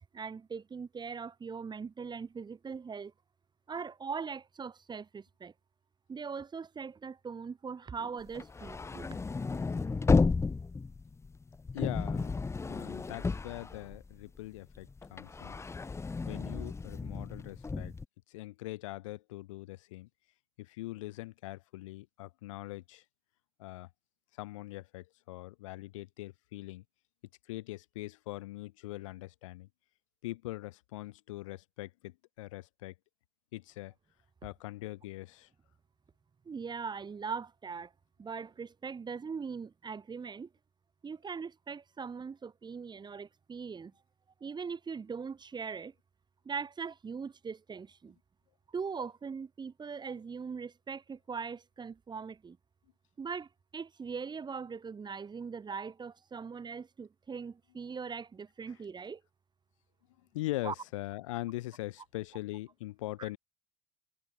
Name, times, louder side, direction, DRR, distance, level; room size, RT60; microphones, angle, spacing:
voice 1, 0.1-3.1 3.7-5.5 6.1-9.2 36.4-37.9 38.2-40.5 41.0-43.9 44.4-45.9 46.4-48.1 48.7-52.6 53.2-59.2 60.6-60.7 63.2-63.3, right 5 dB, 25° right, 3.2 m, -40 dB
sound 1, 8.3-14.4 14.7-18.0, left 4 dB, 15° left, 1.0 m, -32 dB
voice 2, 11.7-12.4 12.7-15.6 16.3-17.9 18.3-20.1 20.6-23.0 23.6-23.9 24.4-26.8 27.5-29.7 30.2-32.9 33.5-33.9 34.4-35.5 60.3-63.4, left 18 dB, 70° left, 6.0 m, -42 dB
figure-of-eight pair, 65°, 17 cm